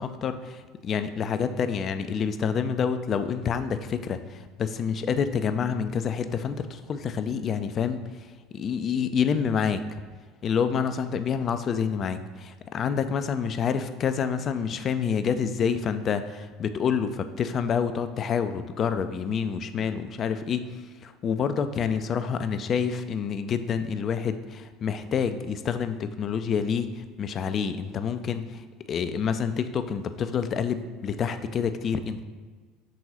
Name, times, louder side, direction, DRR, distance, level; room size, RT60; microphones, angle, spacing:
voice 1, 0.0-8.0 8.5-9.8 10.4-32.2, left 7 dB, 40° left, 10 dB, 0.4 m, -28 dB
6.1 x 3.8 x 4.1 m, 1.5 s
figure-of-eight pair, 65°, 0 cm